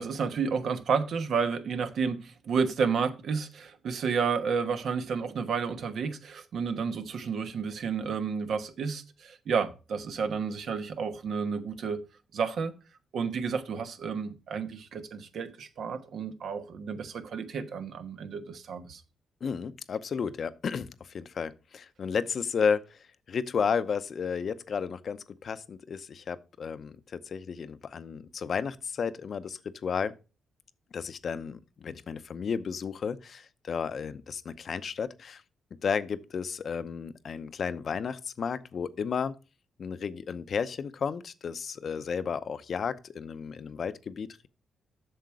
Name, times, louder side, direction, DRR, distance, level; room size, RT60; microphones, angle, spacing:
voice 1, 0.0-12.0 12.3-12.7 13.1-19.0, right 5 dB, 70° right, 1.1 m, -31 dB
voice 2, 19.4-23.0 23.3-30.1 30.9-35.4 35.8-39.3 39.8-44.5, left 6 dB, 60° left, 0.7 m, -33 dB
7.8 x 6.5 x 4.7 m
cardioid pair, 70°, 0 cm